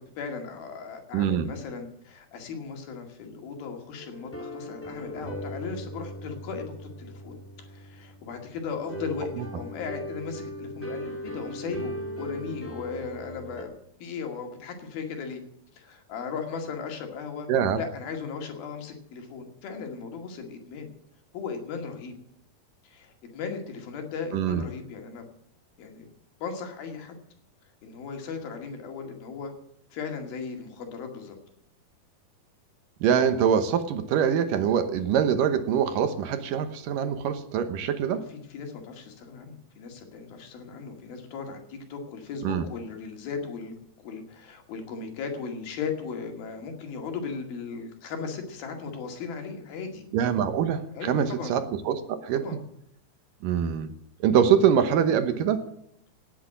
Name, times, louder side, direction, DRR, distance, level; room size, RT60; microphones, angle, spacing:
voice 1, 0.2-13.7 14.0-15.4 15.8-17.5 17.8-20.9 21.3-22.1 22.8-25.2 25.8-26.1 26.4-27.2 27.8-29.5 29.9-31.4 38.3-50.0 50.9-51.6 52.3-52.6, left 5 dB, 75° left, 4 dB, 4.0 m, -37 dB
voice 2, 1.1-1.5 9.4-9.5 17.5-17.8 24.3-24.6 33.0-38.2 42.4-42.6 50.1-52.4 53.4-53.9 54.2-55.7, right 8 dB, 70° right, 10 dB, 2.5 m, -24 dB
sound 1, 4.0-13.6, equal, 5° left, 0.9 m, -39 dB
17.5 x 8.4 x 7.7 m, 0.75 s
omnidirectional pair, 4.3 m